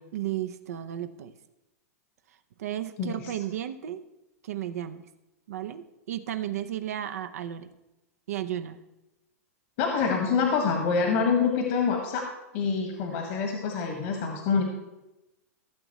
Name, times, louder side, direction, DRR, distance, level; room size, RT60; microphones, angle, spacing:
voice 1, 0.1-1.3 2.6-4.0 4.4-5.0 5.5-7.7 8.3-8.8, right 11 dB, 75° right, 8 dB, 0.7 m, -33 dB
voice 2, 3.0-3.3 9.8-12.2 12.5-14.6, left 5 dB, 55° left, 2 dB, 1.6 m, -26 dB
15.5 x 7.1 x 3.1 m, 0.96 s
hypercardioid pair, 115°, 8 cm